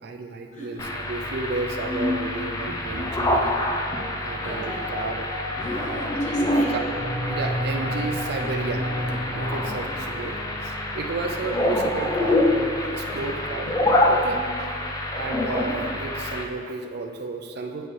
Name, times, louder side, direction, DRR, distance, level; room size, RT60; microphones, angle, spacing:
voice 1, 0.0-3.5 4.2-5.3 5.8-6.2 6.7-6.9 7.3-13.8 14.0-17.9, right 3 dB, 55° right, 4 dB, 0.4 m, -33 dB
voice 2, 0.5-0.8 2.7-2.8 3.7-4.8 5.6-6.8 7.6-8.0 11.5-11.9 13.0-13.4 14.3-14.6, equal, 40° left, -3 dB, 1.1 m, -37 dB
sound 1, 0.8-16.4, left 1 dB, 20° left, 0.4 m, -26 dB
sound 2, 2.5-12.4, equal, ahead, 1.5 m, -34 dB
sound 3, 5.9-13.1, left 1 dB, 75° right, 1.1 m, -44 dB
8.6 x 4.6 x 3.2 m, 2.1 s
head